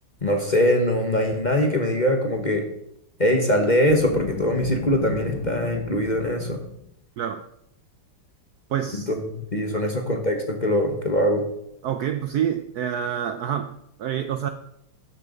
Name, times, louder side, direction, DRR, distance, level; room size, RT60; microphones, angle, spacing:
voice 1, 0.2-2.6 3.2-6.6 9.3-11.4, equal, 30° left, 3 dB, 1.0 m, -22 dB
Boom, 3.9-6.9, left 7 dB, 60° left, 0.8 m, -35 dB
voice 2, 8.7-9.1 9.7-9.9 11.8-14.5, right 9 dB, 70° right, 9 dB, 0.9 m, -27 dB
13.0 x 6.6 x 5.2 m, 0.78 s
omnidirectional pair, 2.1 m